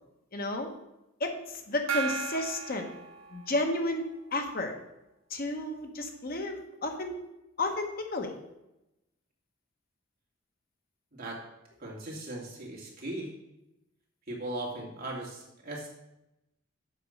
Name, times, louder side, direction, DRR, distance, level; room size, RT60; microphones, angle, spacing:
voice 1, 0.3-0.7 1.2-2.9 3.3-4.7 5.3-7.1 7.6-8.3, left 2 dB, 50° left, 4 dB, 1.1 m, -32 dB
Gong, 1.9-3.9, right 6 dB, 75° right, 0.9 m, -36 dB
voice 2, 11.8-13.3 14.3-15.9, right 1 dB, 50° right, -3 dB, 2.4 m, -38 dB
7.6 x 5.2 x 6.4 m, 0.90 s
head